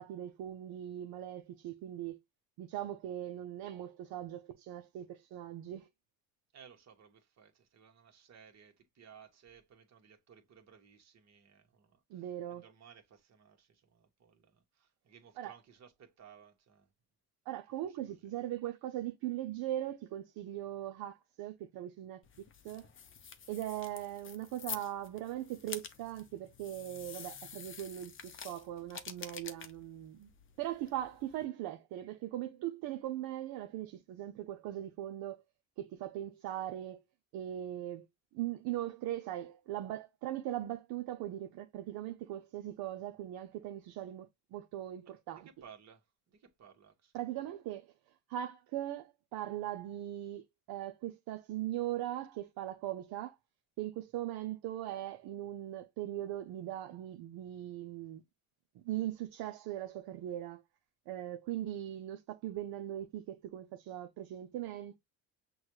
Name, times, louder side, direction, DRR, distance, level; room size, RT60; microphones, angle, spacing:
voice 1, 0.0-2.2 2.6-5.9 12.1-12.6 15.4-15.5 17.5-22.9 23.5-30.3 30.6-35.4 35.8-37.0 37.3-38.1 38.3-45.5 47.1-47.9 48.3-53.3 53.8-58.2 58.8-60.6 61.1-65.0, right 13 dB, 60° right, 0.6 m, -40 dB
voice 2, 6.5-16.9 17.8-18.3 45.0-47.1, right 7 dB, 40° right, 1.3 m, -59 dB
sound 1, 22.2-31.4, left 7 dB, 30° left, 0.7 m, -48 dB
6.2 x 2.3 x 3.0 m
supercardioid pair, 100°, 40 cm